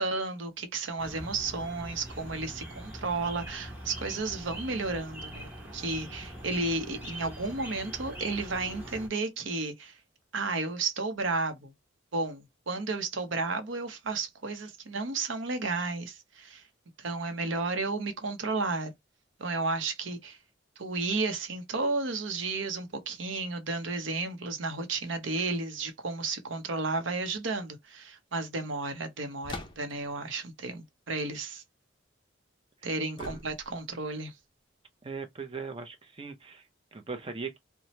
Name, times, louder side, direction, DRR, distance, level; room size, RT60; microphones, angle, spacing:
voice 1, 0.0-10.0 10.3-11.7 12.1-16.6 17.0-18.9 19.4-20.4 20.8-31.6 32.8-34.3, right 3 dB, 75° right, 0.7 m, -33 dB
sound 1, 1.0-9.1, right 1 dB, 10° right, 0.9 m, -43 dB
sound 2, 29.4-30.1 33.2-33.9, left 2 dB, 25° left, 0.5 m, -42 dB
voice 2, 35.0-37.6, right 4 dB, 25° right, 0.5 m, -39 dB
2.8 x 2.1 x 3.0 m
head